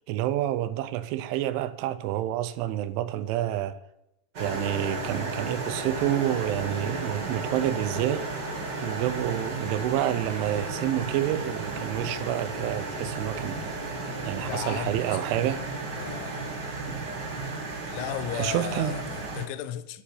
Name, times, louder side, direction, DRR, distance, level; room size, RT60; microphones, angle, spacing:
voice 1, 0.1-3.8 4.4-8.3 8.8-13.6 14.2-15.6 16.9-17.1 18.4-18.9, right 12 dB, 80° right, 3.1 m, -28 dB
sound 1, 4.3-19.4, right 2 dB, 45° right, 1.3 m, -34 dB
voice 2, 14.4-15.2 15.9-16.4 17.8-20.0, left 11 dB, 80° left, 3.0 m, -35 dB
11.0 x 7.4 x 8.6 m
omnidirectional pair, 5.7 m